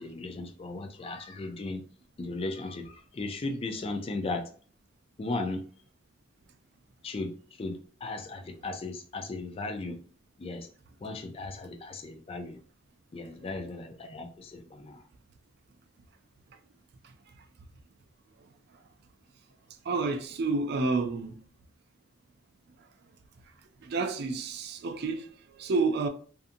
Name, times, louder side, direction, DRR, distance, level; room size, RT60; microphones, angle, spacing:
voice 1, 0.0-1.8 2.2-4.5 5.2-5.6 7.0-7.3 7.6-10.0 10.4-10.7 11.0-12.6 13.1-15.0, left 2 dB, 30° left, 0.3 m, -36 dB
voice 2, 19.9-21.4 23.8-26.1, right 3 dB, 55° right, 0.4 m, -30 dB
2.6 x 2.5 x 2.5 m
head